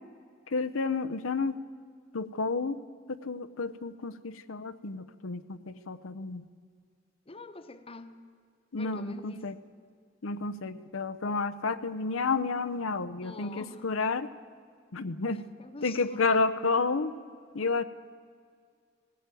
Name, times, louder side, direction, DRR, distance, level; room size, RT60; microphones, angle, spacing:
voice 1, 0.5-1.6 2.1-2.8 3.1-6.4 8.7-9.5 10.2-14.3 14.9-15.4 15.8-17.1 17.5-17.8, left 4 dB, 85° left, 9 dB, 0.8 m, -30 dB
voice 2, 7.3-8.1 8.7-9.5 13.2-13.9 15.3-16.5, left 2 dB, 30° left, 10 dB, 1.1 m, -45 dB
19.0 x 16.0 x 9.1 m, 2.1 s
head